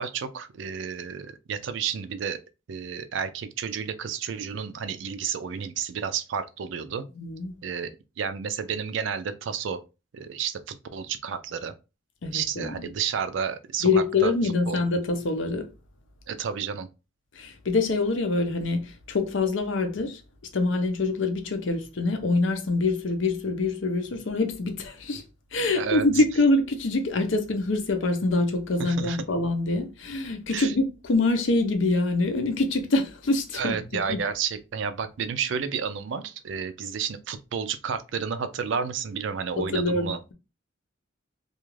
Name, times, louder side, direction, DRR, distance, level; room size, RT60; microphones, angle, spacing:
voice 1, 0.0-2.4 2.7-7.0 7.6-7.9 8.2-9.8 10.1-11.7 12.3-14.8 16.3-16.9 25.7-26.1 28.8-29.2 30.5-30.7 33.5-40.2, right 7 dB, 70° right, 0.4 m, -31 dB
voice 2, 7.2-7.5 12.2-12.9 13.8-15.7 17.3-20.2 20.5-25.2 25.5-33.8 34.1-34.2 39.6-40.3, left 3 dB, 75° left, 0.6 m, -25 dB
2.4 x 2.4 x 3.1 m
head